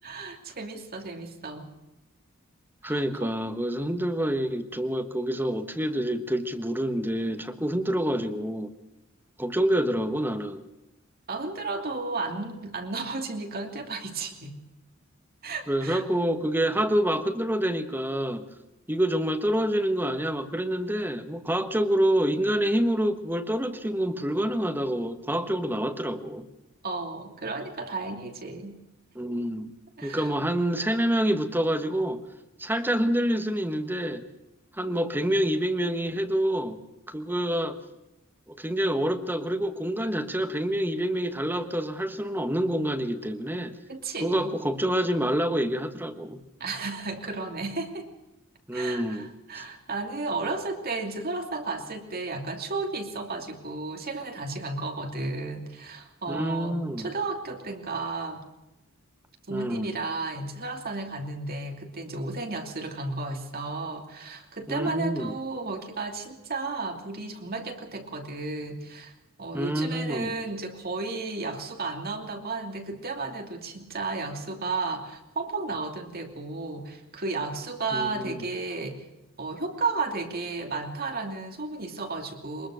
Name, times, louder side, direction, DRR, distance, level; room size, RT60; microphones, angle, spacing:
voice 1, 0.0-1.7 2.8-3.3 11.3-14.5 15.4-16.0 26.8-28.8 30.0-30.3 43.9-44.5 46.6-48.1 48.7-58.4 59.5-69.1 69.4-79.0 79.4-82.7, right 3 dB, 45° right, 3 dB, 2.8 m, -33 dB
voice 2, 2.8-8.7 9.4-10.6 15.7-18.4 18.9-26.5 29.1-29.7 30.0-32.2 32.6-34.2 34.8-36.8 37.1-37.7 38.5-43.8 44.2-46.4 48.7-49.3 49.5-49.6 56.3-57.1 59.5-59.9 64.7-65.3 69.5-70.4 77.9-78.4, right 1 dB, 10° right, 7 dB, 1.4 m, -27 dB
22.5 x 21.0 x 6.4 m, 0.95 s
head